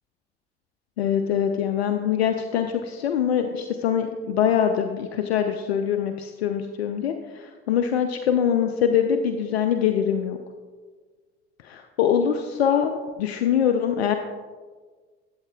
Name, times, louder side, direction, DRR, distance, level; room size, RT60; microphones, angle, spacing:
voice 1, 1.0-10.4 11.6-14.2, left 8 dB, 75° left, 6 dB, 0.5 m, -23 dB
13.5 x 8.0 x 2.3 m, 1.5 s
figure-of-eight pair, 60°, 31 cm